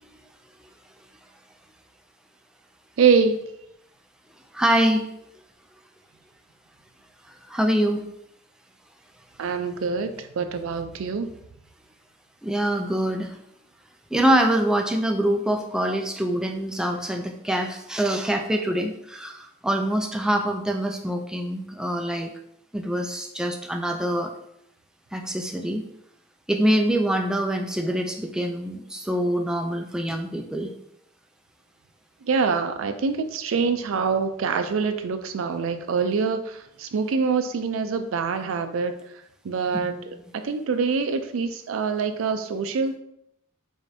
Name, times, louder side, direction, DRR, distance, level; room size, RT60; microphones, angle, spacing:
voice 1, 3.0-3.5 9.4-11.3 32.2-38.9 39.4-43.0, right 5 dB, 75° right, 9 dB, 0.4 m, -25 dB
voice 2, 4.5-5.0 7.5-8.1 12.4-13.4 14.1-22.3 22.7-24.3 25.1-25.8 26.5-30.7, right 1 dB, 5° right, 3 dB, 0.3 m, -24 dB
4.8 x 2.6 x 2.6 m, 0.77 s
head